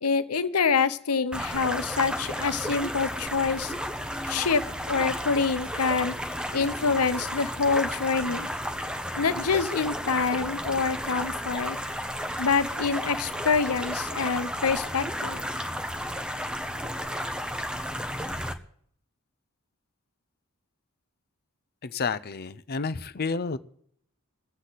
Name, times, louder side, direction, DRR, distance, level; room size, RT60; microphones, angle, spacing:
voice 1, 0.0-3.7 4.2-6.1 6.5-8.5 9.2-11.8 12.4-15.4, left 5 dB, 90° left, 13 dB, 0.9 m, -26 dB
sound 1, 1.3-18.5, equal, 5° right, 0.8 m, -33 dB
voice 2, 21.8-23.6, left 4 dB, 45° left, 13 dB, 0.6 m, -30 dB
22.0 x 8.2 x 4.1 m, 0.64 s
head